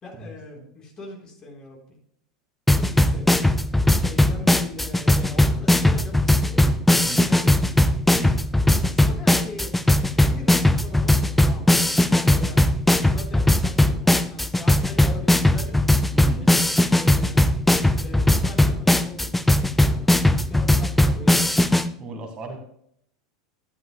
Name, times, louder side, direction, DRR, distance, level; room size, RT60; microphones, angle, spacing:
voice 1, 0.0-2.0 2.7-3.3 4.0-6.7 7.1-7.5 8.7-9.8 10.1-12.6 12.9-17.4 17.9-19.3 19.9-21.5, left 2 dB, 30° left, -1 dB, 3.9 m, -41 dB
sound 1, 2.7-21.9, left 1 dB, 5° left, 0.6 m, -19 dB
voice 2, 16.1-16.4 22.0-22.6, right 3 dB, 30° right, 4 dB, 1.7 m, -36 dB
11.5 x 11.0 x 2.2 m, 0.68 s
figure-of-eight pair, 80°, 3 cm